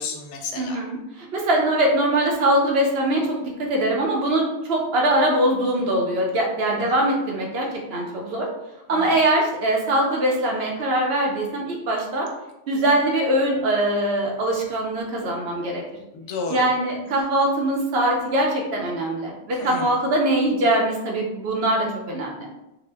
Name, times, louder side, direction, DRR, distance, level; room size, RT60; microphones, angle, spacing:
voice 1, 0.0-0.8 6.8-6.9 8.9-9.2 16.1-16.7 17.1-17.2 19.6-19.9, left 4 dB, 85° left, 3 dB, 0.9 m, -32 dB
voice 2, 0.5-8.5 8.9-12.3 12.7-15.8 16.5-22.5, right 1 dB, 65° right, -1 dB, 0.8 m, -22 dB
2.7 x 2.0 x 3.2 m, 0.93 s
omnidirectional pair, 1.2 m